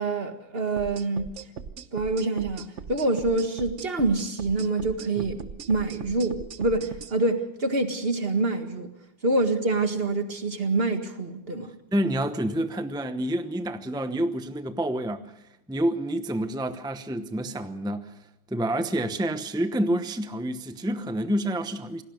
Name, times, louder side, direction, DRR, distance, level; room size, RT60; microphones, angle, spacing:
voice 1, 0.0-1.4 1.9-5.4 5.7-8.9 9.2-11.7, right 2 dB, 30° right, 2.0 m, -26 dB
sound 1, 0.8-7.1, right 6 dB, 45° right, 1.1 m, -39 dB
voice 2, 11.9-15.2 15.7-18.1 18.5-22.0, right 1 dB, 5° right, 0.4 m, -28 dB
27.5 x 18.5 x 6.5 m
omnidirectional pair, 2.0 m